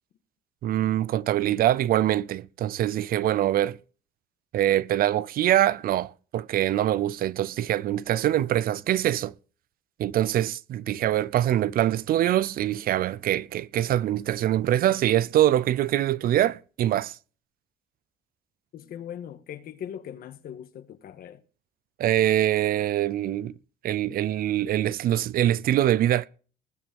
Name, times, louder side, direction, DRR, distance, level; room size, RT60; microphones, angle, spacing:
voice 1, 0.6-3.8 4.5-9.3 10.0-17.2 22.0-23.5 23.8-26.3, right 12 dB, 60° right, 0.6 m, -24 dB
voice 2, 18.7-21.4, left 9 dB, 60° left, 1.6 m, -40 dB
20.0 x 7.4 x 5.3 m
cardioid pair, 110°, 17 cm